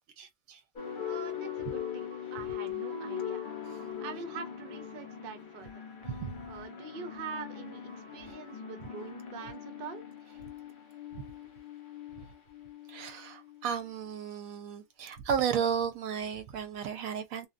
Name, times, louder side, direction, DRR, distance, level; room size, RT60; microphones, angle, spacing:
voice 1, 0.2-0.6 6.1-6.3 11.1-11.2 12.9-17.5, right 7 dB, 85° right, 1.1 m, -33 dB
sound 1, 0.8-14.1, left 8 dB, 50° left, 0.7 m, -41 dB
voice 2, 1.0-3.4 4.0-5.8 6.4-10.0, right 5 dB, 55° right, 0.7 m, -44 dB
2.9 x 2.2 x 2.5 m
omnidirectional pair, 1.4 m